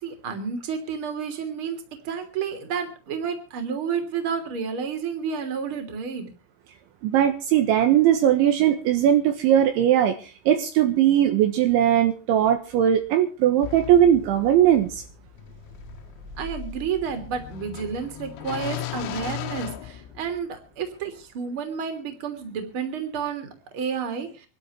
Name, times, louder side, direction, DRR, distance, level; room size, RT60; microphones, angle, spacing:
voice 1, 0.0-6.3 16.4-24.5, right 6 dB, 30° right, 7 dB, 2.9 m, -31 dB
voice 2, 7.0-15.0, right 10 dB, 70° right, 7 dB, 3.4 m, -19 dB
sound 1, 13.6-20.6, left 10 dB, 90° left, 4.0 m, -37 dB
26.5 x 12.5 x 3.1 m, 0.34 s
omnidirectional pair, 5.9 m